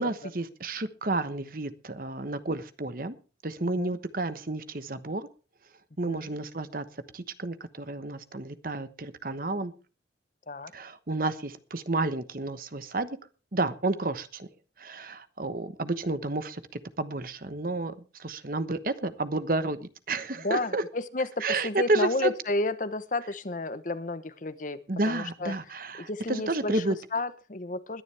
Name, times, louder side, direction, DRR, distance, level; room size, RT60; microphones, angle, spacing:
voice 1, 0.0-3.2 3.4-5.3 6.0-6.8 7.1-9.7 10.7-13.2 13.5-14.5 14.8-20.8 21.4-22.3 24.9-27.0, right 2 dB, 50° right, 12 dB, 1.1 m, -31 dB
voice 2, 3.6-4.0 6.1-6.3 10.5-10.7 20.4-24.8 25.1-25.5 26.0-28.0, left 2 dB, 45° left, 13 dB, 1.0 m, -32 dB
21.0 x 10.5 x 3.4 m, 0.35 s
head